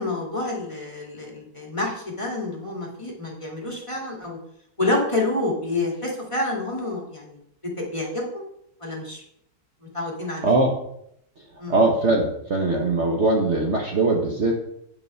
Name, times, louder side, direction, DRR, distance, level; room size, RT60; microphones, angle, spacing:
voice 1, 0.0-4.4 4.8-7.4 7.8-8.4 8.8-9.2 9.9-10.5 11.6-11.7, left 2 dB, 15° left, -2 dB, 2.1 m, -28 dB
voice 2, 10.4-10.8 11.7-14.6, right 2 dB, 45° right, 1 dB, 1.1 m, -21 dB
9.4 x 5.4 x 5.5 m, 0.74 s
omnidirectional pair, 1.9 m